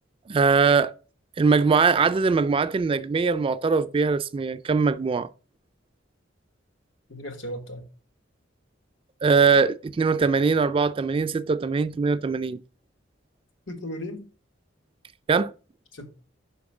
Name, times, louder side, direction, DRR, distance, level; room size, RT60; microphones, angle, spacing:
voice 1, 0.3-0.9 1.4-5.3 9.2-12.6 15.3-15.5, right 5 dB, 30° right, 0.3 m, -21 dB
voice 2, 7.1-7.8 13.7-14.3 15.9-16.1, equal, 85° left, 1.5 m, -36 dB
5.3 x 5.2 x 4.8 m
head